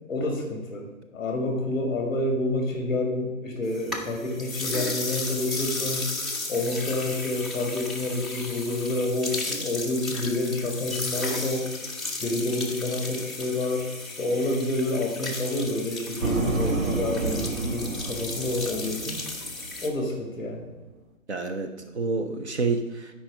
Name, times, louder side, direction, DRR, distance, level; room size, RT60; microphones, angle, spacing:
voice 1, 0.1-6.0 6.5-11.7 12.2-13.9 14.2-19.2 19.8-20.7, left 2 dB, 15° left, 2 dB, 1.6 m, -28 dB
sound 1, 3.7-19.9, left 3 dB, ahead, 0.4 m, -34 dB
sound 2, 16.2-19.9, right 3 dB, 90° right, 1.4 m, -30 dB
voice 2, 21.3-23.1, right 4 dB, 55° right, 6 dB, 0.8 m, -28 dB
9.0 x 4.9 x 5.0 m, 1.2 s
hypercardioid pair, 175°, 41 cm